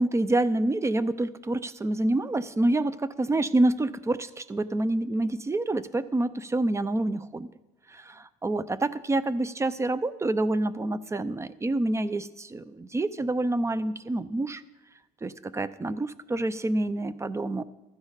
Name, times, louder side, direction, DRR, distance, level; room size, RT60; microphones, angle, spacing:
voice 1, 0.0-7.5 7.9-14.6 15.2-17.6, right 2 dB, 15° right, 15 dB, 0.6 m, -27 dB
15.5 x 13.0 x 4.1 m, 0.96 s
cardioid pair, 110°, 17 cm